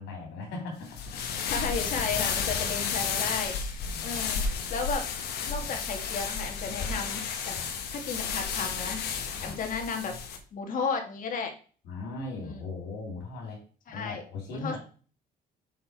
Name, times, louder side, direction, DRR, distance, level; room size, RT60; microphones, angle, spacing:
voice 1, 0.0-1.8 3.8-4.2 5.6-5.7 7.5-7.7 9.3-9.6 11.8-13.6 13.9-14.8, left 3 dB, 90° left, -2 dB, 2.8 m, -39 dB
sound 1, 0.9-10.4, left 6 dB, 75° left, 1.4 m, -32 dB
voice 2, 1.5-5.1 5.4-7.6 7.9-10.1 10.5-11.5 12.4-12.6 13.9-14.2 14.5-14.8, left 5 dB, 50° left, 3 dB, 2.0 m, -34 dB
5.9 x 5.4 x 4.6 m, 0.39 s
cardioid pair, 110°, 17 cm